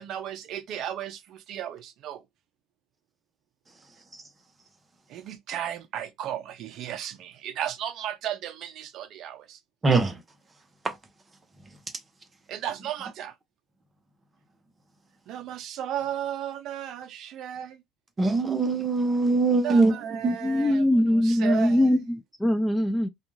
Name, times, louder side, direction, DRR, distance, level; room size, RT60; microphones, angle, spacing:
voice 1, 0.0-2.2 5.1-9.6 12.5-13.3 15.3-17.8 19.6-22.0, right 10 dB, 55° right, 0.5 m, -35 dB
voice 2, 9.8-10.2 10.8-10.9 18.2-19.9 20.2-20.5, right 3 dB, 20° right, 0.7 m, -22 dB
voice 3, 20.4-23.1, left 1 dB, 5° left, 0.3 m, -22 dB
2.5 x 2.3 x 3.0 m
cardioid pair, 140°, 0 cm